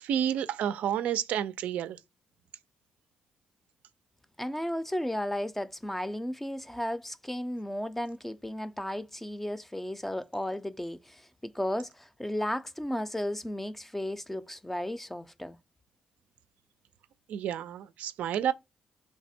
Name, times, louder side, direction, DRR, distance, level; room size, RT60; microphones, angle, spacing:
voice 1, 0.0-2.0 17.3-18.5, right 9 dB, 80° right, 0.3 m, -30 dB
voice 2, 4.4-15.6, left 1 dB, 10° left, 0.5 m, -34 dB
3.2 x 2.1 x 4.2 m
supercardioid pair, 65°, 3 cm